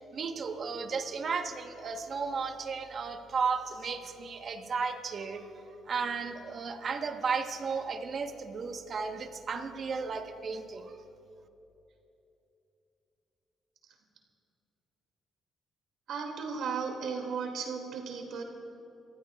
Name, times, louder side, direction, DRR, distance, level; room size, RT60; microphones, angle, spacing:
voice 1, 0.0-5.5 5.9-10.9, right 5 dB, 50° right, 6 dB, 1.2 m, -34 dB
voice 2, 16.1-18.4, right 5 dB, 75° right, 2 dB, 2.4 m, -35 dB
29.0 x 15.0 x 2.4 m, 2.9 s
cardioid pair, 90°, 0 cm